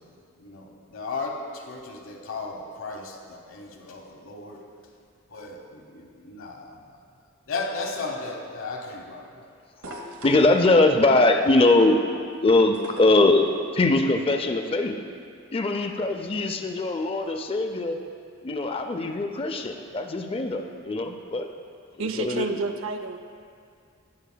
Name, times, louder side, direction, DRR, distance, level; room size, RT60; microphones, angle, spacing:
voice 1, 0.0-4.7 5.3-7.0 7.5-9.4, left 3 dB, 75° left, 1 dB, 1.0 m, -35 dB
sound 1, 9.8-10.6 12.7-13.3 14.8-14.9, right 1 dB, 90° right, 0.9 m, -39 dB
voice 2, 10.2-12.0 12.4-13.5 13.7-14.9 15.5-18.0 18.4-21.5 22.0-22.6, left 2 dB, 25° left, 5 dB, 0.4 m, -21 dB
voice 3, 22.0-23.2, right 3 dB, 70° right, 7 dB, 0.5 m, -29 dB
18.0 x 6.6 x 2.2 m, 2.3 s
head